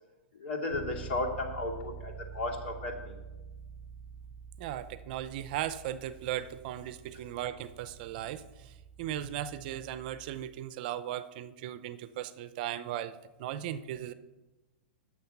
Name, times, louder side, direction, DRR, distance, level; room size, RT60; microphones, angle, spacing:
voice 1, 0.3-3.2, left 2 dB, 70° left, 0 dB, 2.7 m, -34 dB
Bass guitar, 0.7-10.5, right 7 dB, 30° right, 0.9 m, -48 dB
voice 2, 4.6-14.1, right 11 dB, 50° right, 14 dB, 0.6 m, -37 dB
9.5 x 7.2 x 5.9 m, 1.1 s
hypercardioid pair, 145°, 6 cm